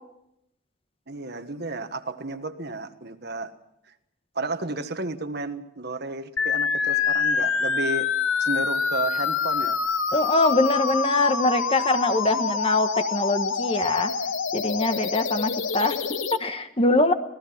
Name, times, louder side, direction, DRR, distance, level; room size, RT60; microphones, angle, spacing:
voice 1, 1.1-3.5 4.3-8.1 8.4-9.8, right 2 dB, 50° right, 9 dB, 1.5 m, -32 dB
sound 1, 6.4-16.4, left 5 dB, 70° left, 1.2 m, -26 dB
voice 2, 10.1-14.1 14.5-17.1, left 2 dB, 25° left, 8 dB, 1.3 m, -23 dB
26.5 x 18.5 x 5.9 m, 0.81 s
head